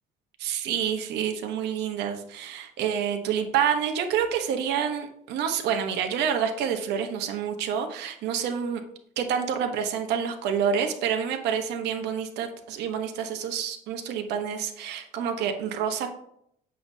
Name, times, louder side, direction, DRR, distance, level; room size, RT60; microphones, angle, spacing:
voice 1, 0.4-8.8 9.2-16.1, right 8 dB, 85° right, 5 dB, 1.0 m, -28 dB
7.9 x 6.6 x 2.7 m, 0.71 s
cardioid pair, 110°, 17 cm